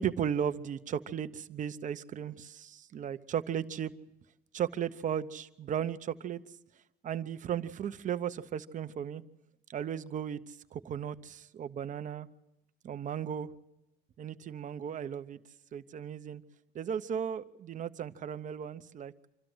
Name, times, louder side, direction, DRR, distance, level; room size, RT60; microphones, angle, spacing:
voice 1, 0.0-3.9 4.5-6.4 7.0-9.2 9.7-12.3 12.8-13.5 14.2-15.4 15.7-16.4 16.7-19.1, right 8 dB, 50° right, 11 dB, 0.9 m, -35 dB
26.5 x 13.0 x 7.9 m, 0.95 s
cardioid pair, 110°, 17 cm